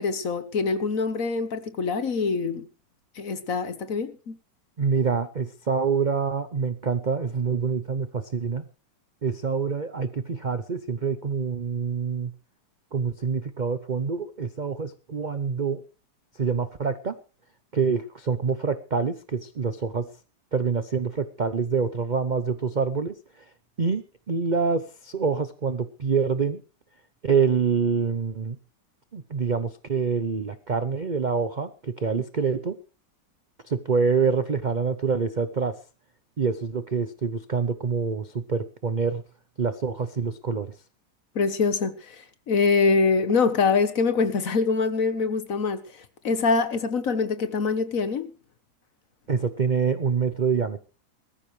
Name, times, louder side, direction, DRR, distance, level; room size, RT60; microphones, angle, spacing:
voice 1, 0.0-2.7 3.2-4.4 41.3-45.8 46.2-48.3, left 4 dB, 50° left, 1.4 m, -24 dB
voice 2, 4.8-8.6 9.2-12.3 12.9-15.8 16.4-17.1 17.7-20.1 20.5-23.2 23.8-26.6 27.2-28.6 29.1-32.8 33.6-35.8 36.4-39.2 39.6-40.7 49.3-50.8, right 5 dB, 70° right, 0.4 m, -26 dB
21.0 x 14.0 x 3.3 m
omnidirectional pair, 2.0 m